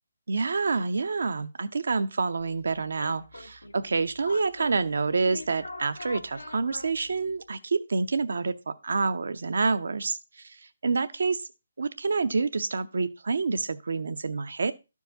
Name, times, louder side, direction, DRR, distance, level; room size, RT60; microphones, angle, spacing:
voice 1, 0.3-10.4 10.8-11.5 11.8-14.7, right 4 dB, 65° right, 0.7 m, -28 dB
sound 1, 2.4-7.5, left 2 dB, 85° left, 1.0 m, -44 dB
13.0 x 4.7 x 2.6 m
figure-of-eight pair, 145°, 0 cm